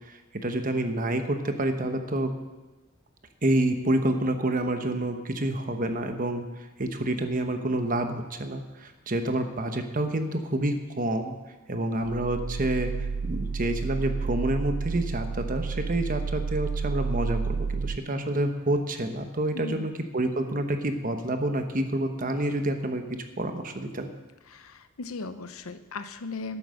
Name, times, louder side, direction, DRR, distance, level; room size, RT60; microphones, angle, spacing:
voice 1, 0.1-2.4 3.4-11.4 11.7-24.1, right 1 dB, 40° right, 6 dB, 1.1 m, -28 dB
sound 1, 12.0-18.0, right 5 dB, 75° right, 0.4 m, -31 dB
voice 2, 19.5-19.9 24.5-26.6, left 3 dB, 90° left, 10 dB, 0.8 m, -37 dB
12.0 x 8.9 x 6.5 m, 1.2 s
head